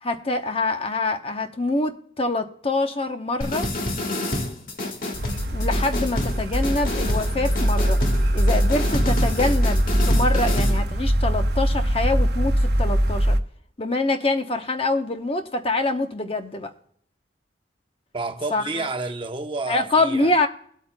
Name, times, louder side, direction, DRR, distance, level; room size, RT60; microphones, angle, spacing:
voice 1, 0.0-3.7 5.5-8.0 8.3-13.4 13.8-16.7 18.5-18.9 19.7-20.5, left 2 dB, 35° left, 0.9 m, -25 dB
sound 1, 3.4-10.8, left 1 dB, 55° left, 1.7 m, -29 dB
sound 2, 5.1-13.4, equal, 65° right, 0.9 m, -22 dB
voice 2, 18.1-20.4, right 3 dB, 30° right, 0.9 m, -30 dB
22.0 x 8.4 x 2.2 m
head